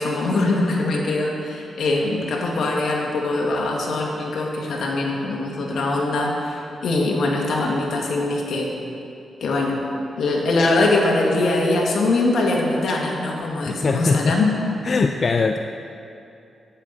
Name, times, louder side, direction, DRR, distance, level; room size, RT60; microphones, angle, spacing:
voice 1, 0.0-8.7 9.4-9.8 10.2-14.5, left 2 dB, 75° left, -1 dB, 1.7 m, -22 dB
voice 2, 13.7-14.4 14.8-15.6, left 4 dB, 45° left, 6 dB, 0.4 m, -21 dB
11.5 x 9.3 x 4.0 m, 2.6 s
cardioid pair, 100°, 0 cm